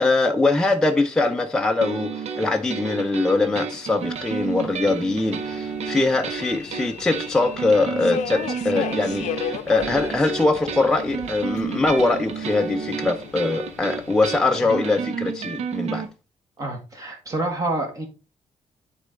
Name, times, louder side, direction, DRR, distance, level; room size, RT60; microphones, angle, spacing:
voice 1, 0.0-16.1, left 3 dB, 5° left, 0.5 m, -22 dB
sound 1, 1.8-16.1, right 6 dB, 65° right, 1.0 m, -31 dB
Subway metro underground, 4.0-14.5, left 10 dB, 85° left, 0.6 m, -36 dB
voice 2, 16.6-18.1, right 2 dB, 30° right, 1.4 m, -27 dB
9.4 x 4.2 x 3.7 m
wide cardioid pair, 170°, 12 cm